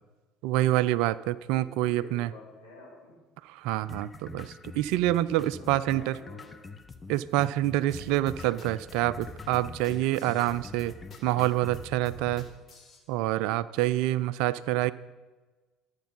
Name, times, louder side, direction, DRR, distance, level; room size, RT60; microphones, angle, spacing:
voice 1, 0.4-2.3 3.5-6.2 7.1-10.9 11.2-12.5 13.1-14.9, right 15 dB, 60° right, 18 dB, 0.3 m, -27 dB
voice 2, 1.5-3.2 5.5-6.7, left 2 dB, 80° left, -4 dB, 2.2 m, -49 dB
sound 1, 3.9-11.9, left 3 dB, 20° left, 0.8 m, -45 dB
sound 2, 7.9-13.0, left 2 dB, 40° left, 2.1 m, -46 dB
12.5 x 8.0 x 5.4 m, 1.3 s
figure-of-eight pair, 60°, 0 cm